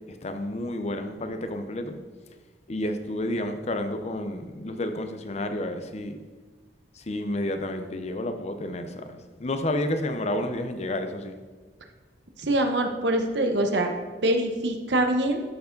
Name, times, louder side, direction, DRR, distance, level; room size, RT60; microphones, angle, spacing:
voice 1, 0.1-2.0 2.7-6.2 6.9-9.1 9.4-11.4, left 1 dB, 40° left, 8 dB, 0.6 m, -30 dB
voice 2, 12.4-13.9 14.2-15.4, right 1 dB, 75° right, 4 dB, 0.9 m, -24 dB
12.0 x 4.8 x 3.8 m, 1.4 s
head